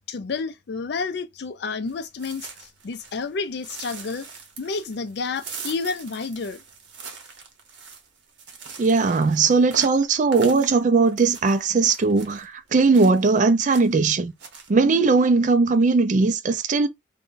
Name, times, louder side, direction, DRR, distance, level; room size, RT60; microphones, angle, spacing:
voice 1, 0.1-4.3 4.6-6.6, left 4 dB, 55° left, 0.4 m, -30 dB
sound 1, 1.9-3.3 3.6-12.5 12.9-13.4 13.6-14.1 14.4-14.7, right 5 dB, 60° right, 0.8 m, -42 dB
voice 2, 8.8-14.3 14.7-16.9, right 4 dB, 40° right, 0.4 m, -19 dB
2.5 x 2.2 x 3.7 m
head